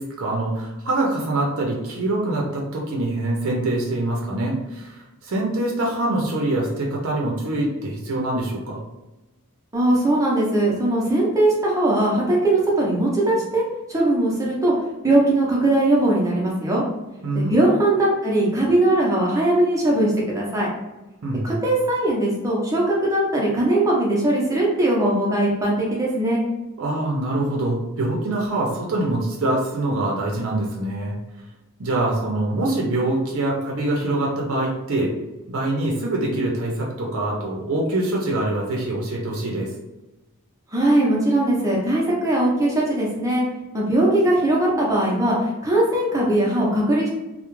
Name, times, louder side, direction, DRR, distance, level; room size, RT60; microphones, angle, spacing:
voice 1, 0.0-8.8 17.2-17.6 21.2-21.6 26.8-31.2 31.8-35.1 35.5-39.7, right 2 dB, 65° right, -2 dB, 0.5 m, -24 dB
voice 2, 9.7-13.6 13.9-14.7 15.0-16.8 17.3-20.7 21.4-26.4 40.7-43.4 43.7-47.1, right 1 dB, 15° right, -4 dB, 0.5 m, -20 dB
2.3 x 2.0 x 3.0 m, 1.1 s
head